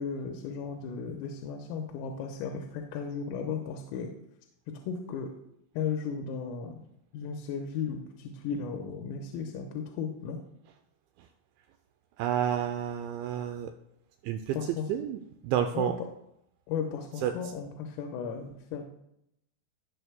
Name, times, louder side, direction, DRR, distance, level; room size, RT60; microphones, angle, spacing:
voice 1, 0.0-4.1 4.7-5.3 5.8-6.8 7.1-10.4 14.6-14.9 15.7-15.9 16.7-18.8, left 6 dB, 85° left, 2 dB, 3.5 m, -35 dB
voice 2, 12.2-13.7 14.2-16.0 17.2-17.5, right 10 dB, 90° right, 7 dB, 2.6 m, -30 dB
18.0 x 7.0 x 2.3 m, 0.77 s
omnidirectional pair, 5.9 m